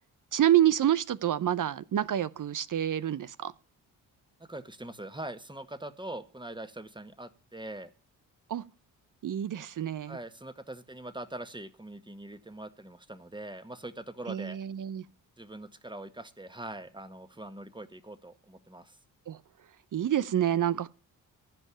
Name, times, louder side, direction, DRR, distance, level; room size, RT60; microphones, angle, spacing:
voice 1, 0.3-3.5 8.5-8.6 9.2-10.2 14.3-15.0 19.3-19.4 19.9-20.9, right 11 dB, 45° right, 0.7 m, -27 dB
voice 2, 4.5-7.9 10.1-14.6 15.4-19.0, right 1 dB, 10° right, 1.7 m, -42 dB
15.0 x 5.4 x 8.6 m
hypercardioid pair, 45°, 45 cm